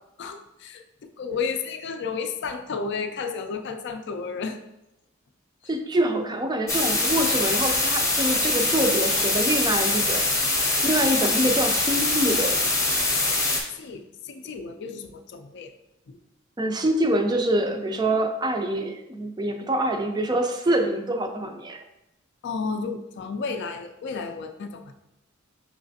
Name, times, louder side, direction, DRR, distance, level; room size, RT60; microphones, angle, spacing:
voice 1, 0.2-4.6 13.4-13.5 13.8-15.7 16.1-16.2 22.4-24.9, left 5 dB, 55° left, 7 dB, 0.4 m, -32 dB
voice 2, 5.7-10.3 10.8-12.6 16.6-21.8, right 1 dB, 20° right, 5 dB, 0.4 m, -25 dB
sound 1, 6.7-13.6, left 2 dB, 15° left, 0.7 m, -23 dB
5.7 x 3.2 x 2.7 m, 0.89 s
head